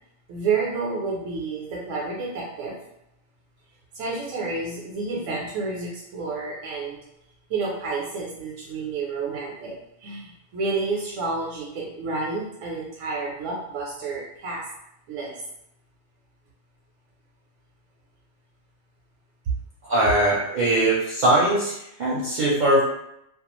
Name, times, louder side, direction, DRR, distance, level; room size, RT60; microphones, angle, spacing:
voice 1, 0.3-2.7 3.9-7.0 7.5-9.7 10.0-14.6 15.1-15.3, right 4 dB, 85° right, -4 dB, 0.9 m, -30 dB
voice 2, 19.9-22.8, right 1 dB, 55° right, -5 dB, 0.5 m, -21 dB
2.3 x 2.2 x 2.9 m, 0.80 s
omnidirectional pair, 1.2 m